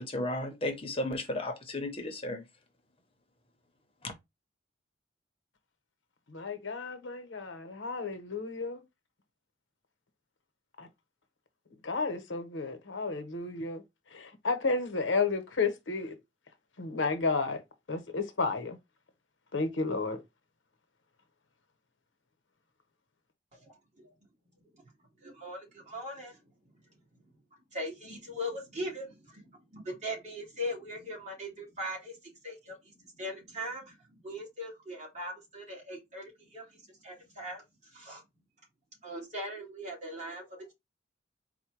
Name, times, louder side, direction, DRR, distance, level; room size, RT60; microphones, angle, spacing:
voice 1, 0.0-2.4 4.0-4.1, left 1 dB, 30° left, 0.8 m, -34 dB
voice 2, 6.3-8.8 10.8-10.9 11.7-13.8 14.1-16.2 16.8-17.6 17.9-18.8 19.5-20.2, left 4 dB, 85° left, 0.9 m, -32 dB
voice 3, 25.2-26.3 27.7-29.2 29.7-32.1 32.4-32.7 33.2-33.9 34.2-36.6 37.0-37.6 37.9-38.2 39.0-40.7, equal, 40° right, 1.8 m, -39 dB
4.2 x 2.2 x 4.5 m
head